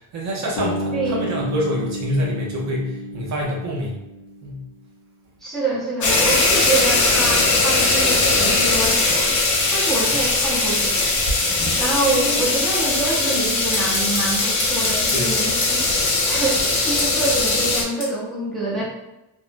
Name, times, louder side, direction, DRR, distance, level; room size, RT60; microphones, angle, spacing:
voice 1, 0.0-4.0 4.4-4.6 15.1-15.3, equal, 45° right, -2 dB, 0.5 m, -26 dB
Bass guitar, 0.6-4.7, equal, 75° left, 0.8 m, -30 dB
voice 2, 0.9-1.3 5.4-9.3 9.7-11.1 11.8-15.8 16.2-18.8, right 2 dB, ahead, -6 dB, 0.6 m, -26 dB
sound 1, 6.0-17.8, left 2 dB, 50° left, 0.6 m, -20 dB
sound 2, 11.1-18.1, left 1 dB, 30° left, 1.0 m, -29 dB
3.3 x 2.0 x 2.5 m, 0.92 s
cardioid pair, 165°, 39 cm